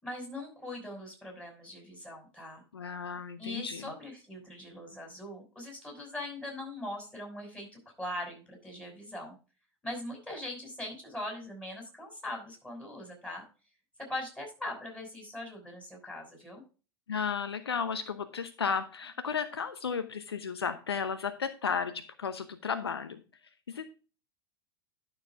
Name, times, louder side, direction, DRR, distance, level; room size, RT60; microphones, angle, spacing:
voice 1, 0.0-2.6 3.4-7.7 8.0-9.4 9.8-13.4 14.1-16.6, left 1 dB, 10° left, 1 dB, 5.8 m, -41 dB
voice 2, 2.7-3.9 17.1-23.2 23.7-23.8, left 6 dB, 80° left, 11 dB, 0.9 m, -34 dB
11.5 x 6.6 x 3.6 m, 0.34 s
figure-of-eight pair, 80°, 13 cm